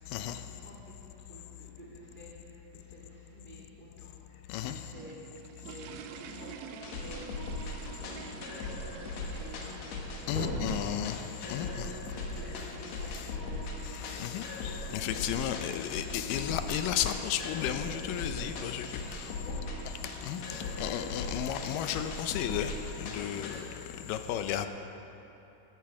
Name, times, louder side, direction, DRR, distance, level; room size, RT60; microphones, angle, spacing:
voice 1, 0.5-4.1 4.5-7.2 7.9-10.9 11.4-13.8 19.2-19.8, equal, 20° right, -5 dB, 1.8 m, -46 dB
voice 2, 4.5-4.8 10.3-11.2 11.5-11.9 13.9-19.3 20.2-22.7 23.0-23.6 24.1-24.7, left 10 dB, 85° left, 8 dB, 2.2 m, -33 dB
sound 1, 4.6-14.9, right 7 dB, 90° right, 1.5 m, -50 dB
sound 2, 6.8-23.6, left 2 dB, 60° left, 2.3 m, -39 dB
13.5 x 9.2 x 5.8 m, 2.9 s
omnidirectional pair, 3.9 m